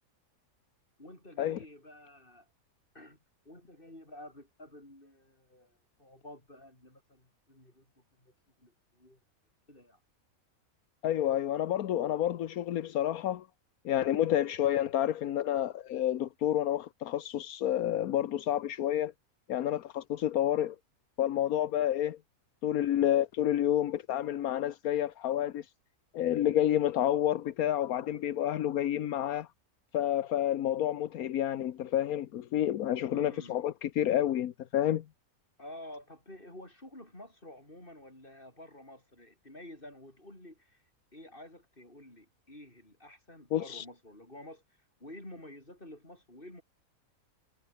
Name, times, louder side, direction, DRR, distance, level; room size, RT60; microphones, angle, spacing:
voice 1, 1.0-2.5 2.9-3.2 3.4-7.9 8.2-8.3 8.6-9.2 9.7-10.0 33.1-33.6 35.6-40.8 41.1-44.6 45.0-46.6, left 1 dB, 35° left, 8.2 m, -50 dB
voice 2, 11.0-13.5 13.8-19.1 19.5-20.8 21.2-22.2 22.6-25.7 26.1-29.5 29.9-35.0 43.5-43.8, left 11 dB, 80° left, 1.3 m, -29 dB
omnidirectional pair, 1.5 m